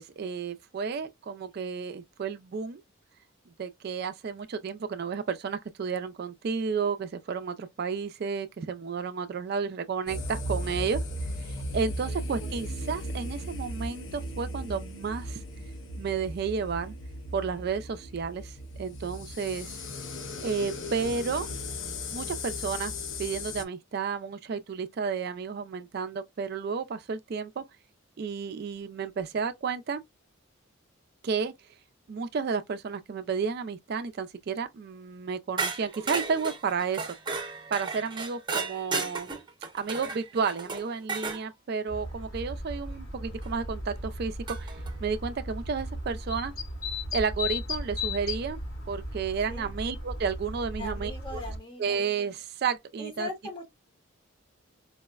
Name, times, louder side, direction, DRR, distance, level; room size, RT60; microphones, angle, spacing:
voice 1, 0.0-2.8 3.6-15.4 16.0-16.9 17.3-19.9 20.4-21.5 22.1-22.9 23.2-27.6 28.2-30.0 31.2-31.5 32.1-37.1 37.7-39.3 39.7-46.5 47.1-48.6 48.9-51.4 51.8-53.3, right 5 dB, 50° right, 0.3 m, -32 dB
sound 1, 10.1-23.6, left 1 dB, 65° left, 0.6 m, -36 dB
voice 2, 12.1-12.6 19.6-20.1 49.5-49.7 50.8-52.0 53.0-53.7, left 2 dB, 25° left, 0.8 m, -41 dB
sound 2, 35.6-41.4 43.4-43.5 44.5-44.9, right 4 dB, 20° right, 0.8 m, -34 dB
sound 3, 41.9-51.6, left 2 dB, 85° left, 1.9 m, -36 dB
4.6 x 2.1 x 2.2 m
head